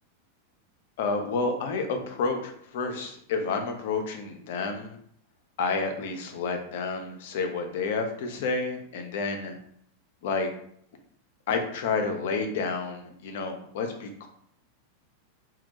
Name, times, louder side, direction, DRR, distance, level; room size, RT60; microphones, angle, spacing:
voice 1, 1.0-5.0 5.6-9.6 10.2-10.5 11.5-14.3, left 4 dB, 55° left, 5 dB, 0.4 m, -30 dB
2.2 x 2.1 x 2.8 m, 0.67 s
figure-of-eight pair, 90°, 0 cm